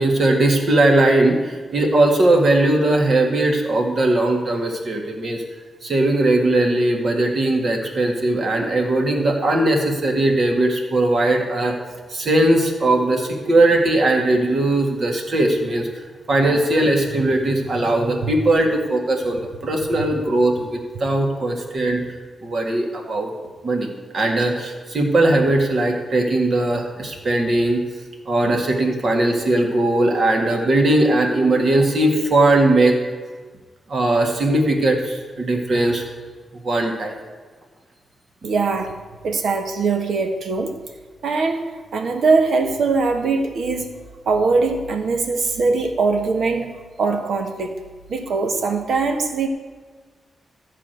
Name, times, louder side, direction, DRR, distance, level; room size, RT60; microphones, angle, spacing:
voice 1, 0.0-5.4 5.8-11.7 12.1-15.9 16.3-22.0 22.4-23.3 23.6-23.9 24.1-27.8 28.3-32.9 33.9-36.0 36.6-37.2, right 2 dB, 40° right, 2 dB, 1.9 m, -19 dB
voice 2, 38.4-38.9 39.2-40.8 41.2-44.0 44.2-47.7 48.1-49.5, right 4 dB, 60° right, 5 dB, 1.3 m, -21 dB
14.0 x 5.0 x 9.1 m, 1.5 s
wide cardioid pair, 165°, 0 cm